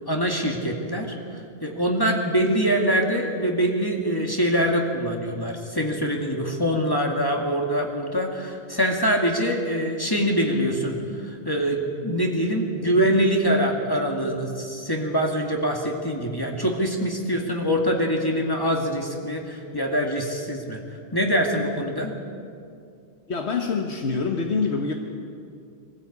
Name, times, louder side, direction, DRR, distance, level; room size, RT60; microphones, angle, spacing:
voice 1, 0.1-1.2 1.6-11.0 11.2-20.8 21.1-22.1, equal, 20° left, 1 dB, 2.0 m, -24 dB
voice 2, 23.3-24.9, left 4 dB, 85° left, 3 dB, 1.5 m, -25 dB
22.0 x 15.0 x 8.6 m, 2.4 s
omnidirectional pair, 1.1 m